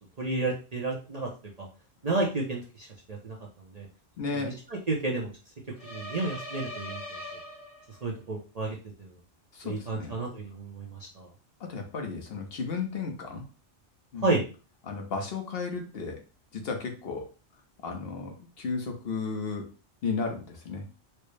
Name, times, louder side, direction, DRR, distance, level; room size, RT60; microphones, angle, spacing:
voice 1, 0.2-1.3 1.6-1.7 2.0-3.3 3.7-3.9 4.4-5.3 5.9-7.2 8.0-9.1 9.6-11.3 14.2-14.4, right 2 dB, 45° right, -2 dB, 0.6 m, -31 dB
voice 2, 4.2-4.6 9.5-10.2 11.6-13.4 14.1-14.3 14.8-16.2 16.5-17.3 17.8-19.7 20.0-20.9, left 4 dB, 60° left, 3 dB, 1.0 m, -34 dB
sound 1, 5.8-8.1, left 1 dB, 35° left, 1.0 m, -40 dB
4.4 x 2.0 x 3.2 m, 0.33 s
omnidirectional pair, 1.2 m